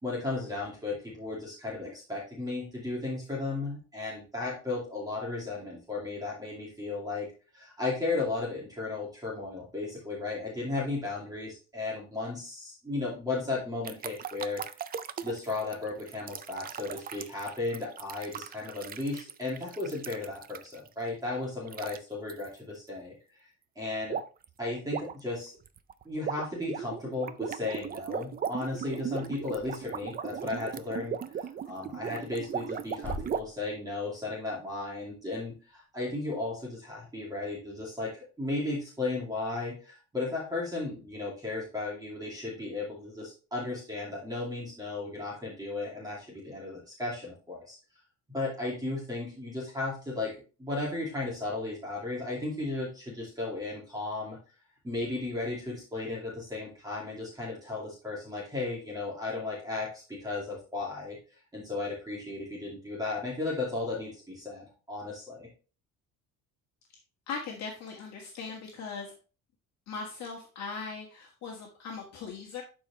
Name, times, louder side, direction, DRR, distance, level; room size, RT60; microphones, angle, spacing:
voice 1, 0.0-7.3 7.5-14.6 15.2-23.1 23.8-24.2 24.6-25.5 26.0-31.2 31.6-47.8 48.3-50.3 50.6-54.4 54.8-61.2 61.5-65.5, left 3 dB, 10° right, -4 dB, 2.6 m, -35 dB
sound 1, 13.8-20.9 21.7-22.0 22.3-22.5 24.1-24.5 24.8-33.4, right 8 dB, 30° right, 0.4 m, -37 dB
sound 2, 29.5-37.3, left 1 dB, 5° left, 1.7 m, -48 dB
voice 2, 67.3-69.1 69.9-72.6, left 5 dB, 55° left, -1 dB, 1.7 m, -39 dB
12.0 x 4.8 x 3.1 m, 0.35 s
cardioid pair, 175°, 33 cm